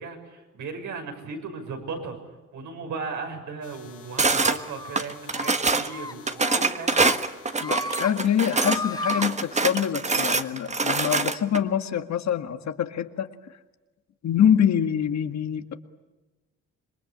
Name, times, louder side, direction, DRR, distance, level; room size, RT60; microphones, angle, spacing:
voice 1, 0.0-2.2 2.5-7.0, right 4 dB, 75° right, 3 dB, 6.6 m, -36 dB
sound 1, 3.6-9.9, left 9 dB, 80° left, 5.2 m, -49 dB
sound 2, 4.2-4.6 5.0-5.9 6.3-8.8 9.1-11.6, right 3 dB, 25° right, 1.5 m, -24 dB
sound 3, 4.4-5.0 5.3-5.5 5.9-6.1 6.4-7.2 7.5-8.1 8.4-9.2, left 1 dB, 15° left, 1.8 m, -33 dB
voice 2, 7.6-13.3 14.2-15.7, left 9 dB, 65° left, 8 dB, 1.9 m, -25 dB
27.5 x 22.0 x 8.6 m, 1.2 s
cardioid pair, 90°, 30 cm